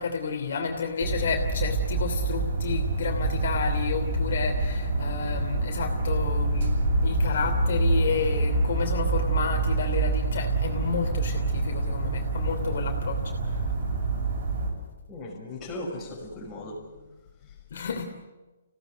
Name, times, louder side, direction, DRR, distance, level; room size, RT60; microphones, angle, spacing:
voice 1, 0.0-13.2 17.7-18.0, left 5 dB, 55° left, 3 dB, 3.0 m, -31 dB
sound 1, 1.0-14.7, right 2 dB, 45° right, 7.9 m, -26 dB
voice 2, 15.1-16.9, left 1 dB, 10° left, -3 dB, 5.7 m, -37 dB
26.0 x 17.0 x 8.3 m, 1.2 s
hypercardioid pair, 165°, 0 cm